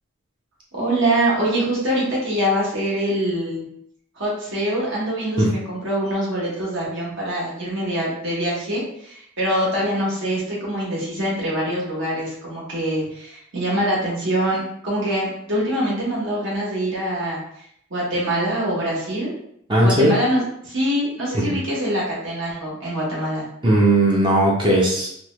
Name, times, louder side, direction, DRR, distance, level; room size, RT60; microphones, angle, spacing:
voice 1, 0.7-3.6 4.2-17.4 17.9-19.3 19.8-23.5, right 1 dB, 65° right, -5 dB, 1.2 m, -24 dB
voice 2, 19.7-20.2 21.3-21.5 23.6-25.1, right 1 dB, 25° right, -3 dB, 0.6 m, -17 dB
3.1 x 2.2 x 3.1 m, 0.71 s
head